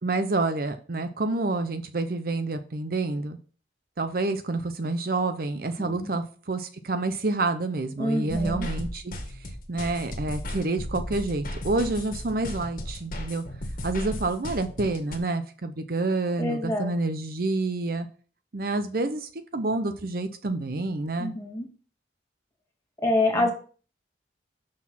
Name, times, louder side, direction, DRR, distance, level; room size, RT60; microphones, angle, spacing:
voice 1, 0.0-3.4 4.0-9.1 9.7-13.4 13.8-18.1 18.5-21.3 23.3-23.5, right 2 dB, 50° right, 9 dB, 0.7 m, -28 dB
voice 2, 5.8-6.1 8.0-8.7 16.4-16.9 21.2-21.7 23.0-23.5, left 2 dB, 15° left, -1 dB, 2.4 m, -26 dB
sound 1, 8.3-15.2, left 1 dB, 45° left, 1.7 m, -35 dB
6.4 x 6.2 x 5.8 m, 0.41 s
head